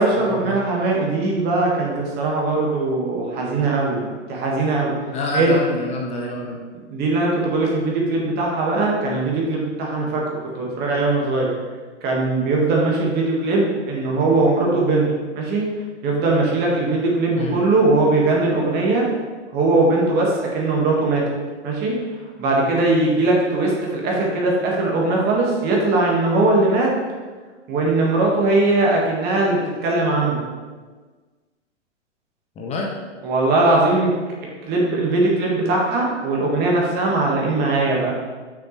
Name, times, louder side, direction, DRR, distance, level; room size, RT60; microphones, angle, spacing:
voice 1, 0.0-4.9 5.3-5.5 6.9-11.5 12.0-15.1 15.4-15.7 16.0-19.1 19.5-21.2 21.6-22.0 22.4-26.9 27.7-30.4 33.2-34.1 34.7-38.1, right 2 dB, 25° right, -2 dB, 1.8 m, -20 dB
voice 2, 5.1-6.6 17.3-17.6 32.6-32.9, left 2 dB, 20° left, -1 dB, 0.8 m, -27 dB
7.1 x 6.2 x 3.2 m, 1.4 s
hypercardioid pair, 120°, 36 cm